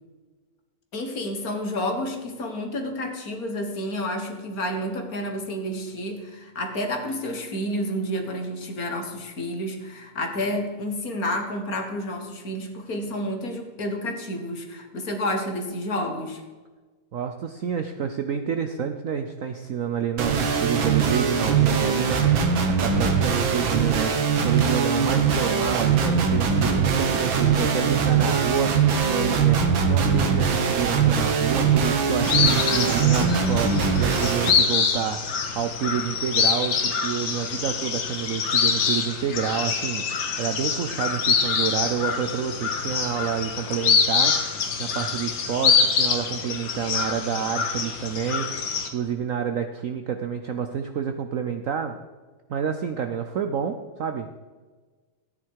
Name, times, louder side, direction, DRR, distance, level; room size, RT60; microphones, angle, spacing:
voice 1, 0.9-16.4, left 1 dB, 45° left, 4 dB, 1.8 m, -30 dB
voice 2, 17.1-22.2 22.7-24.1 24.4-29.6 29.9-40.1 40.4-48.6 48.9-52.0 52.5-54.4, right 8 dB, 85° right, 7 dB, 0.7 m, -29 dB
sound 1, 20.2-34.5, right 6 dB, 70° right, 2.0 m, -21 dB
sound 2, 32.2-48.9, left 6 dB, 65° left, 1.9 m, -25 dB
14.0 x 9.7 x 4.7 m, 1.4 s
omnidirectional pair, 2.3 m